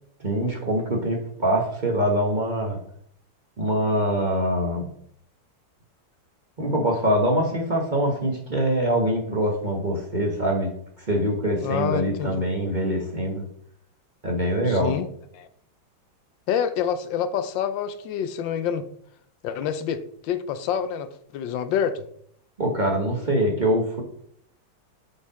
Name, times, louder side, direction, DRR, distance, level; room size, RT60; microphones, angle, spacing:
voice 1, 0.2-2.8 3.6-4.8 6.6-10.7 11.0-13.4 14.2-14.9 22.6-24.0, right 1 dB, 30° right, 0 dB, 0.9 m, -24 dB
voice 2, 11.6-12.4 14.6-15.1 15.3-15.5 16.5-18.9 19.4-22.1, left 8 dB, 75° left, 11 dB, 1.2 m, -27 dB
6.2 x 5.4 x 4.1 m, 0.65 s
omnidirectional pair, 2.2 m